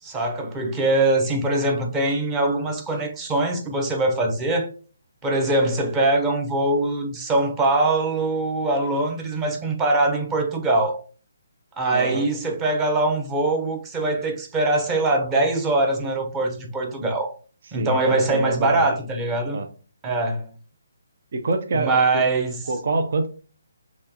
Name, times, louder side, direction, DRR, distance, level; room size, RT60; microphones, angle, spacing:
voice 1, 0.0-4.7 5.2-11.0 11.8-17.3 17.7-19.6 20.0-20.5 21.7-22.7, right 2 dB, 15° right, 0.9 m, -22 dB
voice 2, 11.9-12.3 17.7-18.9 19.5-19.7 21.3-22.2 22.7-23.3, right 3 dB, 55° right, 0.7 m, -25 dB
6.3 x 2.9 x 2.9 m
hypercardioid pair, 160°, 0 cm